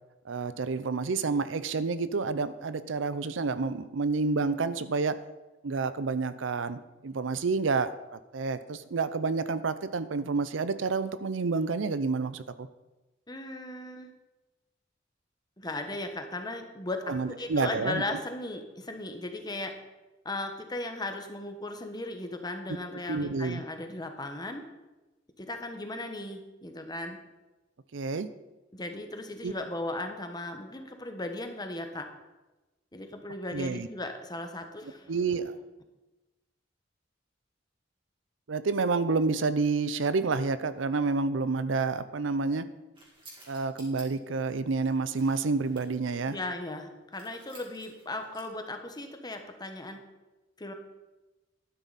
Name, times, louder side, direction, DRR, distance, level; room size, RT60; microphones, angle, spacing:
voice 1, 0.3-5.2 5.6-12.7 17.1-18.0 23.1-23.6 27.9-28.3 29.4-29.5 33.5-33.9 35.1-35.6 38.5-42.7 43.5-46.4, right 4 dB, 80° right, 13 dB, 0.6 m, -29 dB
voice 2, 13.3-14.1 15.6-19.7 20.2-24.7 25.4-27.2 28.7-32.0 32.9-35.1 46.3-50.0 50.6-50.7, left 2 dB, 20° left, 5 dB, 1.2 m, -37 dB
sound 1, 42.9-44.0 44.7-46.3 47.1-48.6 49.6-49.8, right 2 dB, 25° right, 2.8 m, -54 dB
12.0 x 9.9 x 4.2 m, 1.1 s
head